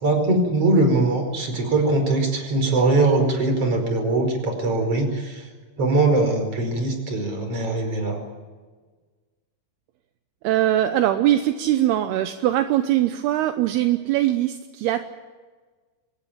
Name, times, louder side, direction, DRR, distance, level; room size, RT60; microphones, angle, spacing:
voice 1, 0.0-5.4 5.8-8.2, right 2 dB, 30° right, 5 dB, 5.5 m, -21 dB
voice 2, 10.4-15.1, right 13 dB, 75° right, 8 dB, 2.5 m, -21 dB
24.5 x 20.0 x 8.8 m, 1.4 s
omnidirectional pair, 5.4 m